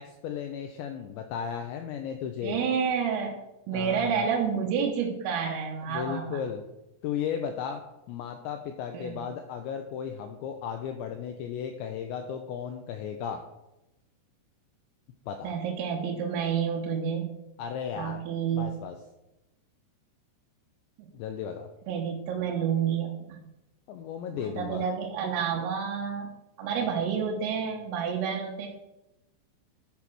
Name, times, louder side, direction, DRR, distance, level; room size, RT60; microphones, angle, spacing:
voice 1, 0.0-2.7 3.7-4.3 5.8-6.6 7.0-7.8 8.1-13.4 15.3-15.5 17.6-18.2 18.5-19.0 21.1-21.7 23.9-24.8, left 8 dB, 90° left, 5 dB, 2.5 m, -35 dB
voice 2, 2.4-3.3 3.7-6.4 8.9-9.3 15.4-17.3 17.9-18.7 21.0-21.1 21.9-23.4 24.3-28.7, right 7 dB, 85° right, -1 dB, 3.7 m, -29 dB
10.5 x 4.8 x 6.0 m, 0.93 s
omnidirectional pair, 5.9 m